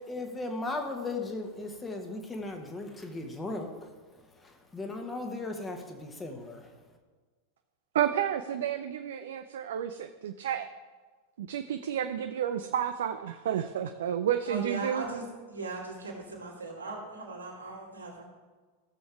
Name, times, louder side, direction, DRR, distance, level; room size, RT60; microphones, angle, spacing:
voice 1, 0.0-4.0 4.3-6.7, left 2 dB, 15° left, 4 dB, 1.3 m, -37 dB
voice 2, 7.9-10.7 11.4-15.0, right 9 dB, 60° right, 8 dB, 0.4 m, -31 dB
voice 3, 14.5-18.2, right 3 dB, 80° right, -4 dB, 2.6 m, -39 dB
16.0 x 6.9 x 3.5 m, 1.4 s
figure-of-eight pair, 90°, 0 cm